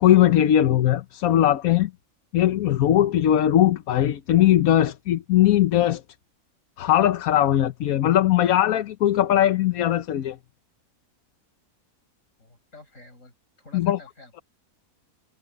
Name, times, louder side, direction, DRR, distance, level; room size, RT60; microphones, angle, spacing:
voice 1, 0.0-1.9 2.3-6.0 6.8-10.4 13.7-14.0, left 12 dB, 75° left, 1.2 m, -19 dB
voice 2, 12.4-14.4, left 2 dB, 60° left, 6.6 m, -49 dB
omnidirectional pair, 1.5 m